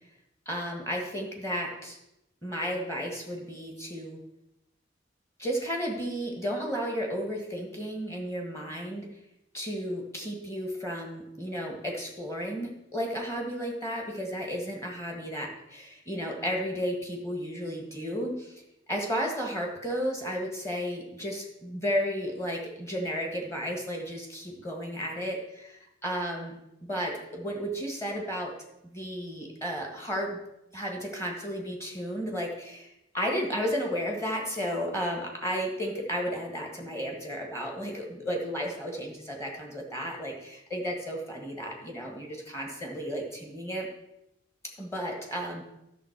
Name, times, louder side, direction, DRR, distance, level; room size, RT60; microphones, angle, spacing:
voice 1, 0.4-2.0 2.4-4.2 5.4-9.1 9.5-18.6 18.9-28.6 28.8-30.4 30.7-43.9 44.8-45.6, equal, 15° left, 1 dB, 1.6 m, -33 dB
12.5 x 6.5 x 4.6 m, 0.85 s
head